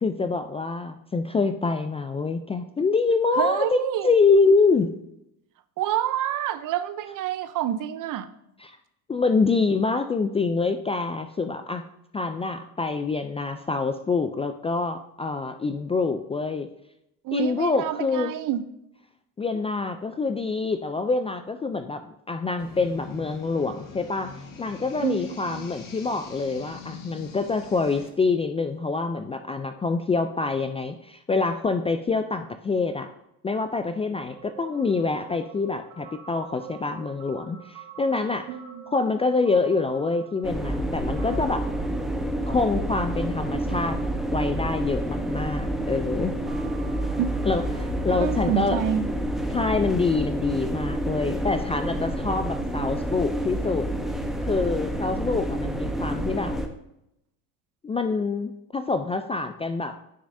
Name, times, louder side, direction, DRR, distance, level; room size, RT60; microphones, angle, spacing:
voice 1, 0.0-4.9 8.6-8.7 9.1-11.8 12.1-16.7 17.3-18.3 19.4-24.3 24.6-33.1 33.4-38.5 38.9-41.6 42.5-44.0 44.3-46.3 47.4-48.8 49.5-53.9 54.4-56.5 57.8-60.0, left 4 dB, 15° left, 8 dB, 0.3 m, -26 dB
voice 2, 3.4-4.1 5.8-8.3 17.2-18.6 25.0-25.7 38.5-38.8 47.2-47.4 48.2-49.1, right 11 dB, 50° right, 13 dB, 0.7 m, -28 dB
sound 1, 22.6-28.1, left 4 dB, 50° left, 1.6 m, -43 dB
sound 2, 33.8-45.7 46.3-48.9, right 9 dB, 85° right, 1.4 m, -48 dB
sound 3, 40.4-56.7, right 1 dB, ahead, 0.9 m, -28 dB
9.6 x 6.3 x 2.7 m, 0.81 s
supercardioid pair, 90°, 42 cm